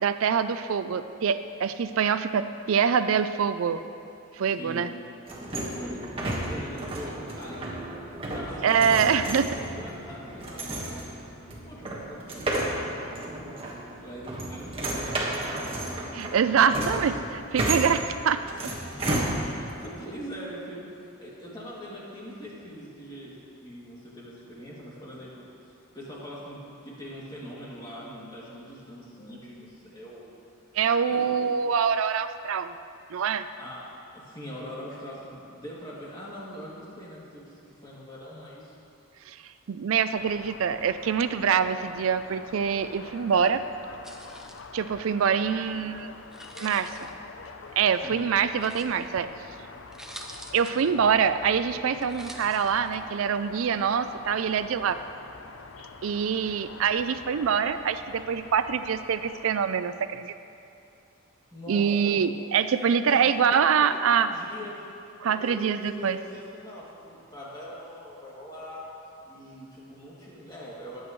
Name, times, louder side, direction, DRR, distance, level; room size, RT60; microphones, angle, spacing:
voice 1, 0.0-3.8 4.4-4.9 8.6-9.5 16.1-18.4 30.8-32.7 33.1-33.5 39.3-39.4 39.7-43.6 44.7-46.1 46.6-47.1 47.8-49.3 50.5-55.0 56.0-60.3 61.7-64.3 65.2-66.2, right 7 dB, 80° right, 11 dB, 0.4 m, -25 dB
voice 2, 4.6-4.9 5.5-6.1 6.5-7.9 8.3-11.4 11.6-13.6 14.0-15.7 16.4-16.9 19.5-25.4 25.9-30.3 31.0-31.3 33.6-33.9 34.1-38.7 48.0-48.3 61.5-62.2 63.1-64.9 65.2-68.9 69.3-71.0, equal, 20° left, -7 dB, 2.5 m, -42 dB
sound 1, 5.3-19.9, right 1 dB, 25° right, 1.5 m, -33 dB
sound 2, 40.2-59.6, left 4 dB, 75° left, 0.6 m, -46 dB
sound 3, 44.0-44.6 46.3-47.1 48.6-49.1 49.6-49.7 49.9-50.9 52.0-53.0, right 1 dB, ahead, 0.5 m, -46 dB
21.0 x 8.2 x 3.2 m, 2.6 s
head